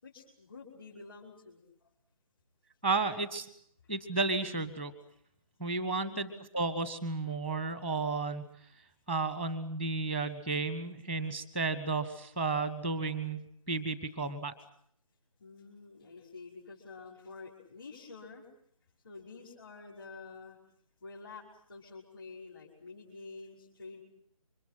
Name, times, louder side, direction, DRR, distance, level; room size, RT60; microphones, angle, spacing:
voice 1, 0.0-1.6 5.8-6.4 15.4-18.5 19.0-20.6 21.0-24.0, left 4 dB, 40° left, -3 dB, 5.6 m, -49 dB
voice 2, 2.8-3.5 3.9-4.9 5.6-8.5 9.1-14.5, right 3 dB, 5° left, 14 dB, 1.0 m, -33 dB
29.0 x 25.0 x 5.9 m, 0.67 s
figure-of-eight pair, 150°, 19 cm